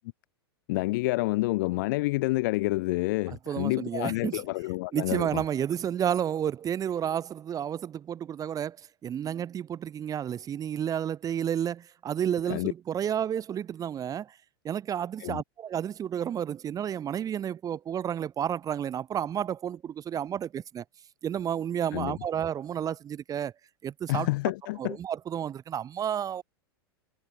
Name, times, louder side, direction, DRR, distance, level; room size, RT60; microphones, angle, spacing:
voice 1, 0.7-5.4 12.5-12.7 15.2-15.4 21.9-22.1 24.1-25.0, left 21 dB, 55° left, 0.5 m, -28 dB
voice 2, 3.3-4.4 4.9-8.8 9.0-14.4 14.6-20.8 21.2-23.5 23.8-24.3 24.8-26.4, right 9 dB, 25° right, 2.5 m, -31 dB
figure-of-eight pair, 95°, 13 cm